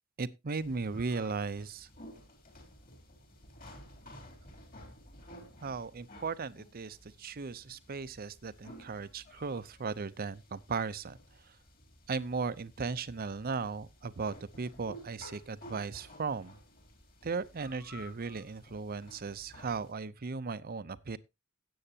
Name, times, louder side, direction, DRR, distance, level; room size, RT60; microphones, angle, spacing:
voice 1, 0.2-1.9 5.6-11.2 11.4-11.6 12.1-16.6 17.2-21.2, right 4 dB, 45° right, 0.6 m, -37 dB
sound 1, 0.6-19.9, equal, 45° left, 3.5 m, -54 dB
17.0 x 7.9 x 2.8 m
head